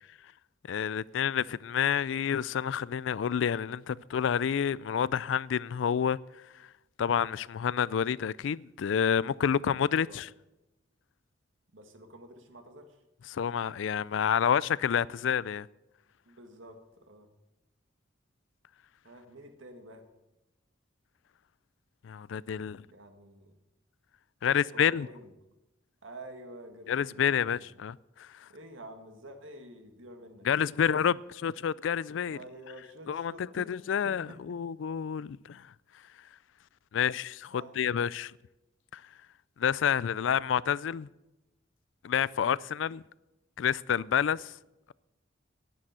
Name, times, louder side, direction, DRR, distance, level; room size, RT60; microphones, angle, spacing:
voice 1, 0.7-6.2 7.0-10.3 13.3-15.7 22.0-22.8 24.4-25.1 26.9-28.3 30.4-32.4 33.1-35.6 36.9-38.3 38.9-39.0 39.6-41.1 42.0-43.0 43.6-44.5, left 8 dB, 70° left, 0.4 m, -29 dB
voice 2, 9.9-10.2 11.7-13.0 16.3-17.3 19.0-20.0 22.9-23.5 24.4-25.3 26.0-27.7 28.5-30.6 32.3-33.7 34.0-34.6 37.5-37.8 40.1-40.4, right 1 dB, 80° right, 1.9 m, -49 dB
10.0 x 10.0 x 7.7 m
head